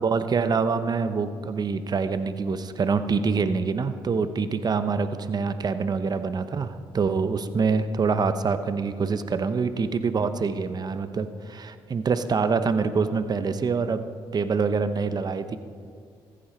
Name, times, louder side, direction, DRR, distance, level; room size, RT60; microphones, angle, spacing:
voice 1, 0.0-14.0 14.3-15.6, right 5 dB, 45° right, 11 dB, 0.9 m, -25 dB
15.0 x 14.0 x 4.4 m, 2.3 s
cardioid pair, 75°, 10 cm